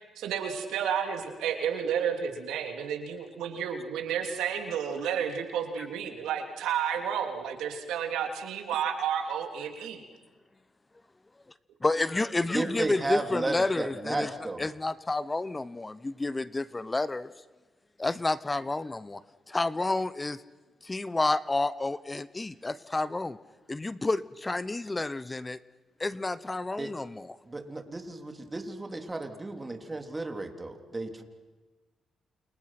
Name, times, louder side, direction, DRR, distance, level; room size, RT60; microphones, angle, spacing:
voice 1, 0.2-10.0, right 8 dB, 85° right, 4 dB, 3.3 m, -31 dB
voice 2, 11.8-14.3 14.6-17.3 18.0-19.2 19.5-20.4 20.8-23.4 23.7-25.6 26.0-27.4, left 2 dB, 20° left, 17 dB, 0.9 m, -30 dB
voice 3, 12.5-14.6 26.8-26.9 27.5-31.2, right 2 dB, 25° right, 5 dB, 3.6 m, -34 dB
29.5 x 28.5 x 6.0 m, 1.3 s
supercardioid pair, 70°, 0 cm